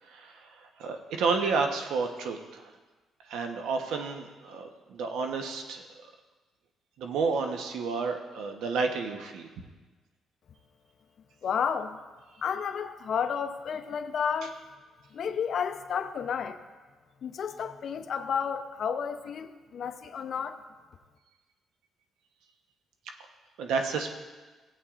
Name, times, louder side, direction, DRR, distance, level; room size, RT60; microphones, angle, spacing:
voice 1, 0.8-2.6 3.3-5.8 7.0-9.5 23.6-24.2, right 4 dB, 85° right, 4 dB, 1.0 m, -30 dB
voice 2, 11.4-12.0 12.4-14.6 15.1-16.6 17.2-20.6, left 7 dB, 60° left, 9 dB, 0.6 m, -31 dB
16.0 x 8.4 x 2.5 m, 1.3 s
cardioid pair, 90°, 0 cm